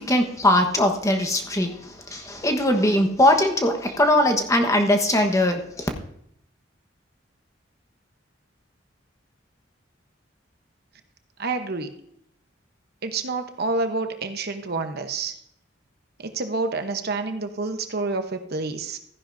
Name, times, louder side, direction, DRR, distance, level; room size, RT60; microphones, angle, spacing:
voice 1, 0.0-1.7 2.1-5.9, left 1 dB, 15° left, 5 dB, 1.2 m, -20 dB
voice 2, 11.4-11.9 13.0-15.3 16.2-19.0, right 3 dB, 55° right, 7 dB, 1.0 m, -28 dB
14.5 x 10.5 x 2.7 m, 0.71 s
head